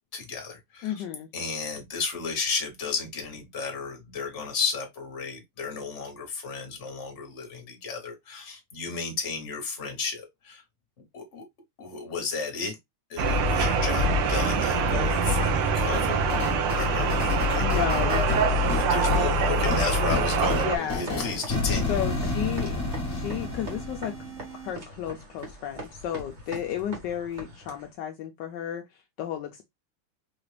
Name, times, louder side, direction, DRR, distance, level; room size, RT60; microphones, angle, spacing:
voice 1, 0.1-1.0 1.3-10.6 11.1-11.4 11.8-12.8 13.1-16.2 16.7-18.0 18.6-21.9, left 4 dB, 40° left, 1.3 m, -33 dB
voice 2, 0.8-1.3 17.6-18.3 20.6-21.1 21.9-22.8 23.1-24.2 24.6-29.6, left 10 dB, 75° left, 1.0 m, -33 dB
sound 1, 13.2-20.8, right 2 dB, 85° right, 1.7 m, -24 dB
sound 2, 15.9-24.7, left 2 dB, 10° left, 0.7 m, -32 dB
sound 3, 18.7-27.9, right 1 dB, 35° right, 1.3 m, -44 dB
4.7 x 2.5 x 3.2 m
omnidirectional pair, 2.4 m